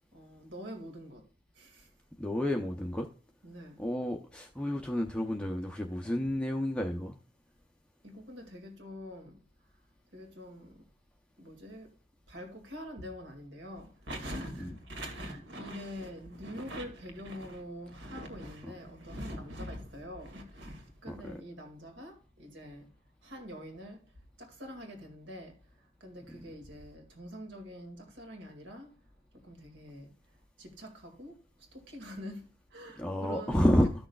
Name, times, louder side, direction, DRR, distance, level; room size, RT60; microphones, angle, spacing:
voice 1, 0.1-1.3 1.5-1.9 3.4-3.8 8.0-9.4 10.1-10.8 11.4-12.0 12.3-22.9 23.2-28.9 29.3-30.1 30.6-32.4 32.7-33.7, equal, 65° right, 2.1 m, -44 dB
voice 2, 2.2-3.1 3.8-7.2 14.6-14.7 21.1-21.4 33.0-33.9, left 1 dB, 5° left, 0.6 m, -30 dB
14.0 x 6.3 x 2.3 m
head